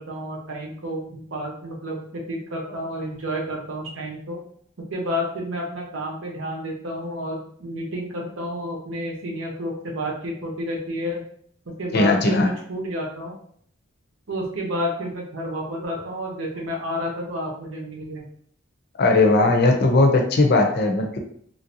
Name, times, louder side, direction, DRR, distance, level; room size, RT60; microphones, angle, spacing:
voice 1, 0.0-4.4 4.9-11.2 11.8-13.3 14.3-18.2, equal, 90° right, -1 dB, 0.9 m, -30 dB
voice 2, 11.9-12.5 19.0-21.2, left 2 dB, 55° left, 4 dB, 0.5 m, -18 dB
3.2 x 2.5 x 2.8 m, 0.62 s
head